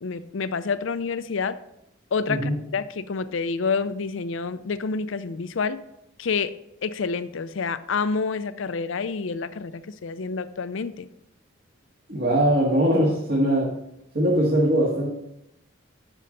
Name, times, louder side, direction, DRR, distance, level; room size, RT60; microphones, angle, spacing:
voice 1, 0.0-1.6 2.1-5.8 6.2-6.5 6.8-11.1, left 5 dB, 75° left, 13 dB, 0.5 m, -28 dB
voice 2, 12.1-13.7 14.1-15.1, right 1 dB, 50° right, -4 dB, 1.8 m, -21 dB
9.6 x 6.5 x 3.9 m, 0.84 s
head